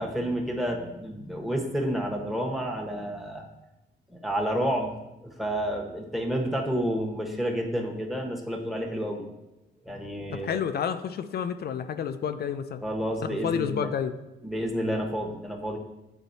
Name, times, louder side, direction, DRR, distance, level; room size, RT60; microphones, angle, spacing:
voice 1, 0.0-3.4 4.1-4.9 5.2-9.2 9.8-10.7 12.8-13.9 14.4-15.8, equal, ahead, 1 dB, 1.1 m, -30 dB
voice 2, 10.4-12.8 13.2-14.1, left 8 dB, 55° left, 9 dB, 0.4 m, -30 dB
9.0 x 4.0 x 2.7 m, 0.96 s
cardioid pair, 90°, 20 cm